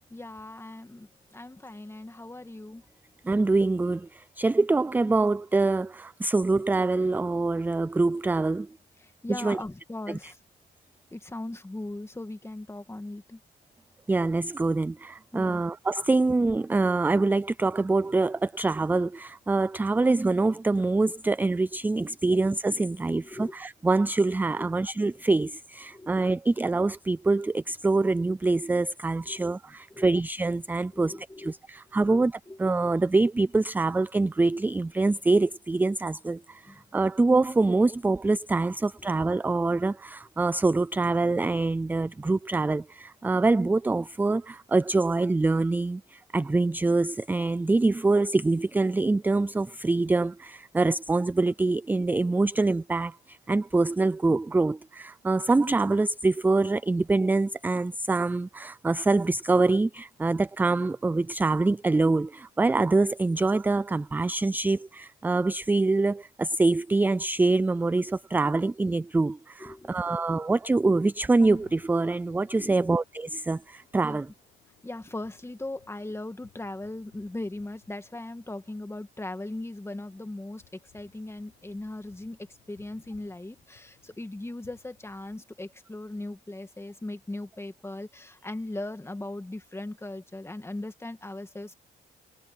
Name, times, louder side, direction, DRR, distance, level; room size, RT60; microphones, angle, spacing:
voice 1, 0.1-2.8 9.0-10.4 11.1-13.4 15.3-15.6 23.2-23.6 24.5-24.8 25.9-26.2 29.2-29.5 29.9-30.2 30.9-31.6 32.0-32.6 36.7-36.8 69.6-70.2 72.6-72.9 74.0-74.3 74.8-82.4 82.7-91.7, left 2 dB, 15° left, 2.1 m, -39 dB
voice 2, 3.3-8.7 9.3-9.6 14.1-32.3 32.6-74.3, right 3 dB, 10° right, 0.3 m, -25 dB
sound 1, 69.3-70.2 70.5-70.7 71.0-71.1 71.4-85.4, left 12 dB, 80° left, 5.0 m, -62 dB
cardioid pair, 90°, 20 cm